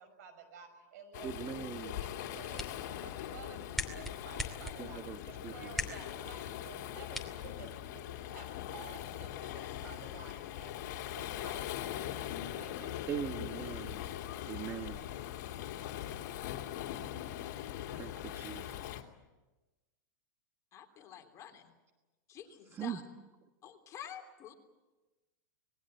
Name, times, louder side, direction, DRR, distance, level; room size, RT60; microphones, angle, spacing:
voice 1, 0.0-1.3 1.7-5.0 5.3-12.3 12.5-13.1, right 6 dB, 65° right, 8 dB, 6.0 m, -53 dB
Waves surf, 1.1-19.0, left 12 dB, 60° left, 2.7 m, -41 dB
voice 2, 1.2-1.9 4.8-5.2 5.4-5.9 13.1-14.0 14.5-15.1 18.0-19.0 22.7-23.0, right 9 dB, 25° right, 8 dB, 1.2 m, -41 dB
sound 1, 2.2-8.2, left 1 dB, ahead, 2.8 m, -44 dB
voice 3, 20.7-21.7 22.3-23.0 23.6-24.5, left 9 dB, 30° left, 3 dB, 3.3 m, -49 dB
26.0 x 20.5 x 7.9 m, 1.1 s
hypercardioid pair, 130°, 10 cm